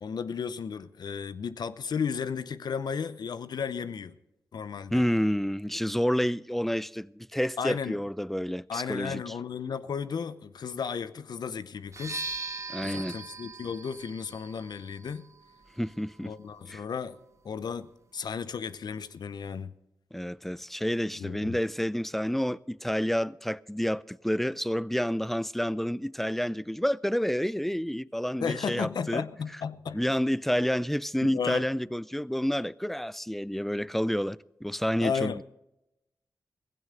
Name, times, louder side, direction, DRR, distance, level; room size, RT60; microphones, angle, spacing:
voice 1, 0.0-4.1 4.5-5.0 7.6-8.0 8.7-12.2 12.8-15.3 16.2-17.2 17.4-19.7 21.1-21.6 28.4-30.0 31.3-31.6 35.0-35.4, left 6 dB, 80° left, 0.7 m, -34 dB
voice 2, 4.9-9.3 12.7-13.2 15.8-16.3 16.7-16.8 20.1-29.3 29.9-35.4, equal, 5° left, 0.5 m, -29 dB
sound 1, 11.9-19.6, right 3 dB, 45° right, 1.6 m, -43 dB
16.5 x 15.5 x 3.8 m
cardioid pair, 50°, 7 cm